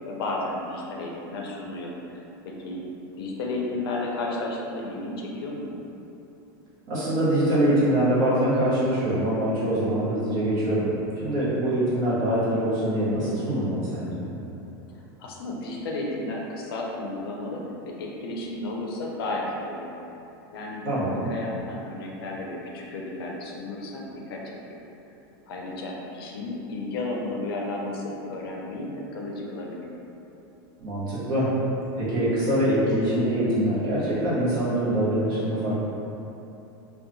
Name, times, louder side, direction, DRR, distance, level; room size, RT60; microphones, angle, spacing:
voice 1, 0.1-2.8 3.2-5.8 14.9-19.9 20.5-24.4 25.5-29.9, left 2 dB, 80° left, -1 dB, 0.5 m, -33 dB
voice 2, 6.9-10.9 11.2-14.3 20.8-21.3 30.8-31.5 32.0-35.8, right 1 dB, 30° right, -10 dB, 0.8 m, -24 dB
2.8 x 2.3 x 2.5 m, 2.9 s
supercardioid pair, 175°, 12 cm